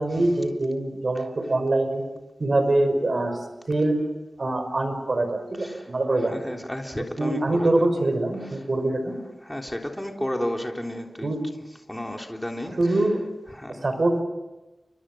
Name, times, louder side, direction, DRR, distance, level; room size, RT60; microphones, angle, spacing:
voice 1, 0.0-2.1 2.4-4.0 4.4-6.5 7.2-9.2 11.2-11.4 12.7-13.3 13.7-14.2, right 2 dB, 60° right, 8 dB, 5.8 m, -24 dB
voice 2, 6.2-7.9 9.4-11.3 11.9-12.8 13.5-13.8, left 1 dB, 10° left, 2 dB, 3.4 m, -32 dB
30.0 x 25.0 x 6.4 m, 1.0 s
cardioid pair, 50°, 0 cm